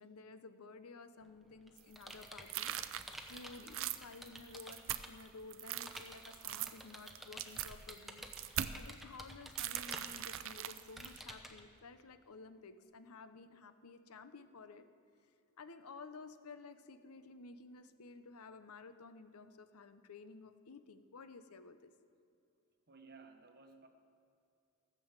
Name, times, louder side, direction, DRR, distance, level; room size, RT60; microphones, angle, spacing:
voice 1, 0.0-2.8 3.0-14.8 15.6-21.9, left 4 dB, 75° left, 11 dB, 0.7 m, -54 dB
Computer keyboard, 1.2-5.3 5.9-11.6, equal, ahead, 0.9 m, -51 dB
sound 1, 1.8-5.2 5.5-8.9 9.6-11.2, right 12 dB, 60° right, 0.5 m, -41 dB
voice 2, 22.9-23.9, right 4 dB, 45° right, 6 dB, 1.1 m, -57 dB
15.0 x 6.9 x 7.4 m, 2.6 s
head